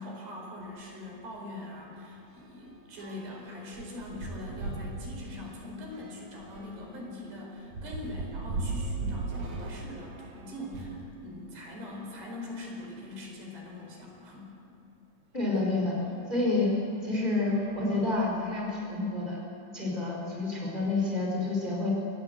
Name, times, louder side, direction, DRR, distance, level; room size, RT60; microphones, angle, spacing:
voice 1, 0.0-14.5, left 1 dB, 65° right, 0 dB, 6.7 m, -42 dB
sound 1, 0.6-0.8 1.2-1.3 1.6-11.1 11.8-13.1 13.8-13.9 14.2-14.3 16.0-16.1 16.7-16.9 17.4-18.6, right 3 dB, 50° right, 2.7 m, -40 dB
voice 2, 15.3-16.0 16.3-16.7 17.0-19.4 19.7-21.9, left 2 dB, 10° left, -2 dB, 4.3 m, -29 dB
26.0 x 19.0 x 8.1 m, 2.8 s
omnidirectional pair, 5.2 m